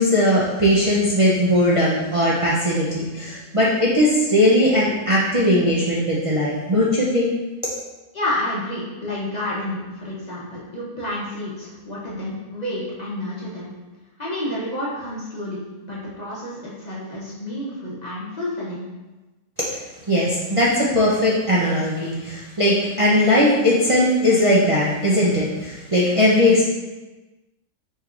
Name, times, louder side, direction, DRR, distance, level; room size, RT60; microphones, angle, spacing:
voice 1, 0.0-7.3 19.6-19.8 20.1-26.6, left 1 dB, 60° right, -6 dB, 0.3 m, -19 dB
voice 2, 8.1-13.7 14.2-18.9, left 1 dB, 35° left, -6 dB, 0.8 m, -30 dB
5.3 x 3.2 x 2.5 m, 1.1 s
omnidirectional pair, 1.6 m